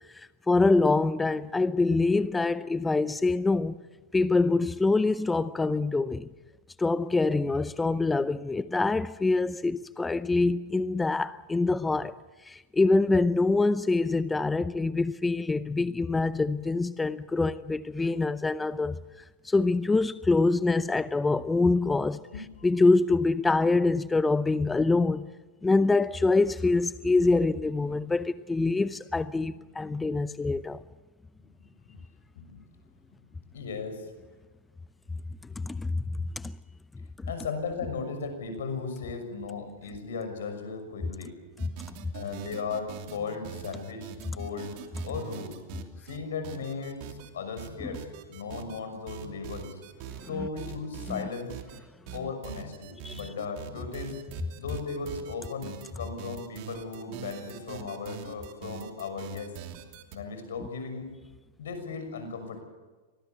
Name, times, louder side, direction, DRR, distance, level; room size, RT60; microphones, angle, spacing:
voice 1, 0.1-3.8 4.1-6.3 6.8-12.2 12.4-19.0 19.4-22.2 22.6-25.3 25.6-30.8 35.6-36.5 37.2-37.3 47.8-47.9 50.2-50.5 51.1-51.3 53.0-53.2, left 3 dB, 10° left, 0.6 m, -25 dB
voice 2, 22.3-22.7 32.3-32.6 33.5-34.1 37.3-41.4 42.1-44.8 45.0-45.6 46.0-49.8 50.2-51.5 52.1-54.2 54.6-59.5 60.1-61.1 61.6-62.6, left 5 dB, 80° left, 6.2 m, -36 dB
sound 1, 41.6-46.2 46.4-47.3 47.6-48.8 49.1-50.3 50.6-51.8 52.1-60.2, right 9 dB, 55° right, 2.9 m, -43 dB
25.0 x 18.5 x 8.0 m
hypercardioid pair, 115°, 0 cm